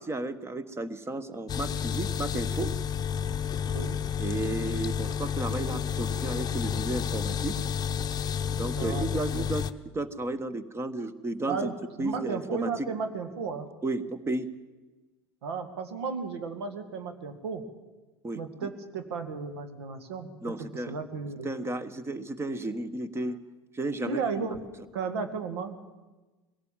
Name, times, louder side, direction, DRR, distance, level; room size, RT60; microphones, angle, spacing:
voice 1, 0.0-2.7 4.2-7.5 8.6-9.6 9.9-11.7 12.0-12.9 13.8-14.5 18.2-18.4 20.4-21.0 21.4-23.4 23.7-24.4, right 2 dB, 20° right, 15 dB, 1.3 m, -33 dB
sound 1, 1.5-9.7, left 8 dB, 30° left, 0.8 m, -30 dB
voice 2, 3.7-4.0 8.8-9.5 11.5-13.7 15.4-17.6 18.4-21.5 24.0-24.6 24.9-25.7, right 5 dB, 75° right, 8 dB, 2.0 m, -34 dB
22.0 x 17.0 x 7.4 m, 1.2 s
hypercardioid pair, 80°, 14 cm